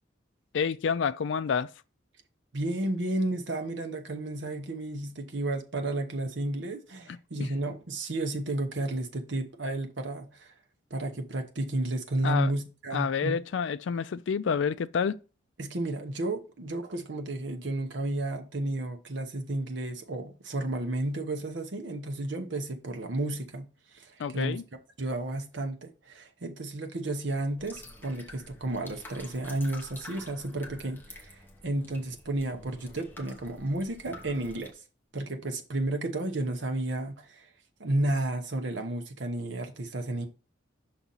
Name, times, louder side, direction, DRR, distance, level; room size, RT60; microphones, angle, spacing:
voice 1, 0.5-1.7 7.1-7.2 12.2-12.5 12.9-15.2 24.2-24.6, left 6 dB, 65° left, 0.4 m, -28 dB
voice 2, 2.5-10.5 10.9-13.4 15.6-23.7 23.9-24.6 25.0-34.7 35.1-37.5 37.8-40.3, right 2 dB, 65° right, 0.9 m, -32 dB
sound 1, 27.6-34.7, left 1 dB, 10° left, 0.9 m, -48 dB
5.9 x 4.1 x 3.9 m
head